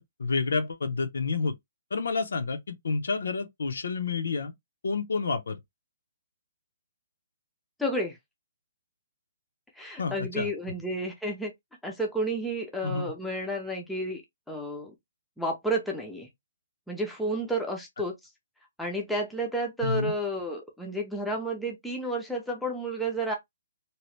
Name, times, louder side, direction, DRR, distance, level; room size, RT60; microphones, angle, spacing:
voice 1, 0.0-1.5 1.9-4.5 4.8-5.6 10.0-10.5 12.8-13.1 19.8-20.1, left 4 dB, 80° left, 0.7 m, -29 dB
voice 2, 7.8-8.2 9.8-11.5 11.8-14.2 14.5-14.9 15.4-16.3 16.9-18.2 18.8-23.3, right 1 dB, ahead, 0.4 m, -31 dB
2.8 x 2.0 x 3.0 m
hypercardioid pair, 175°, 0 cm